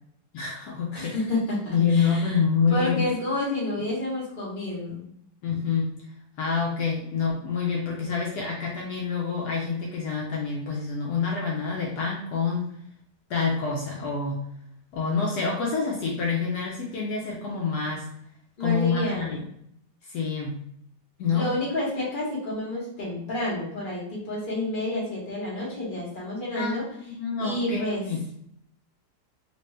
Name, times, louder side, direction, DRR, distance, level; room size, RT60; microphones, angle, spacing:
voice 1, 0.3-1.2 1.7-3.1 5.4-5.9 6.4-12.7 13.3-14.4 14.9-18.1 18.6-19.4 20.0-20.6 21.2-21.5 26.5-26.8 27.2-28.2, left 5 dB, 75° left, -3 dB, 1.2 m, -27 dB
voice 2, 0.9-2.4 2.7-5.0 18.6-19.4 21.3-26.8 27.4-28.0, left 1 dB, 30° left, -6 dB, 1.4 m, -29 dB
2.9 x 2.9 x 3.3 m, 0.71 s
omnidirectional pair, 1.8 m